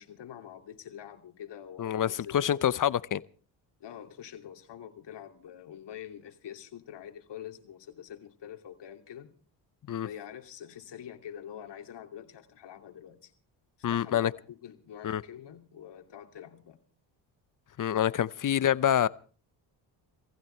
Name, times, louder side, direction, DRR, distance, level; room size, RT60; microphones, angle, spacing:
voice 1, 0.0-2.7 3.8-9.4 10.0-13.3 13.9-16.8, left 9 dB, 60° left, 2.8 m, -46 dB
voice 2, 1.8-3.2 9.9-10.1 13.8-14.3 15.0-15.2 17.8-19.1, left 10 dB, 40° left, 0.8 m, -26 dB
19.0 x 15.5 x 4.5 m
supercardioid pair, 75°, 47 cm